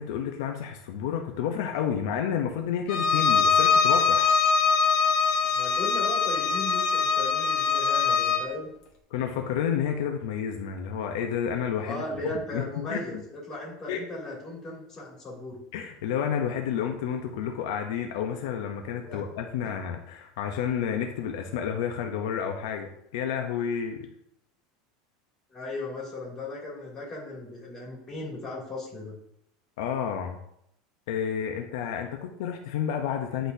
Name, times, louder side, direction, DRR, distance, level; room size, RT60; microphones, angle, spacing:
voice 1, 0.0-4.3 9.1-12.7 12.9-13.2 13.9-14.0 15.7-24.1 29.8-30.4 31.1-33.5, left 8 dB, 75° left, 4 dB, 0.7 m, -30 dB
Bowed string instrument, 2.9-8.5, left 5 dB, 45° left, 1.3 m, -23 dB
voice 2, 5.5-8.7 11.8-13.2 13.5-15.6 19.0-19.2 25.5-29.2, left 2 dB, 20° left, -5 dB, 2.4 m, -36 dB
10.0 x 4.0 x 2.7 m, 0.75 s
supercardioid pair, 160°, 2 cm